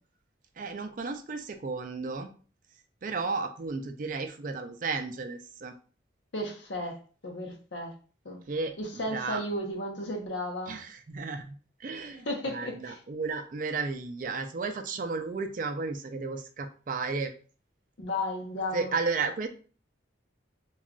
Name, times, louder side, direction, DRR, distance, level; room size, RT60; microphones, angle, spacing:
voice 1, 0.6-2.3 3.0-5.7 8.5-8.7 9.1-9.4 10.7-11.5 11.8-17.3 18.7-19.5, right 4 dB, 45° right, 7 dB, 0.3 m, -33 dB
voice 2, 6.3-7.9 8.2-8.4 8.8-10.8 11.9-13.0 18.0-18.9, left 1 dB, 75° left, 1 dB, 0.8 m, -34 dB
2.4 x 2.2 x 3.6 m, 0.38 s
head